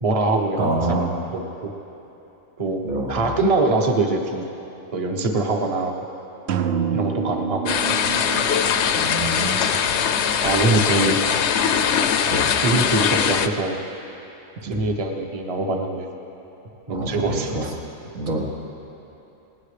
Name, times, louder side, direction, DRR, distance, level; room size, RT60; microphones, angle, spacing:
voice 1, 0.0-1.7 2.6-2.8 3.1-4.5 4.9-6.0 6.9-7.8 10.1-11.4 11.9-12.2 12.6-13.8 14.6-16.1 16.9-17.7, right 2 dB, 30° right, 2 dB, 1.0 m, -23 dB
voice 2, 0.6-1.1 2.8-3.3 9.0-9.6 11.0-11.1 12.3-12.5 14.7-14.8 16.9-17.6 18.1-18.4, right 2 dB, 85° right, -2 dB, 2.2 m, -26 dB
sound 1, 6.5-10.3, right 7 dB, 60° right, 0.8 m, -28 dB
sound 2, 7.7-13.5, left 7 dB, 65° left, 0.8 m, -21 dB
19.0 x 18.5 x 3.3 m, 3.0 s
omnidirectional pair, 1.4 m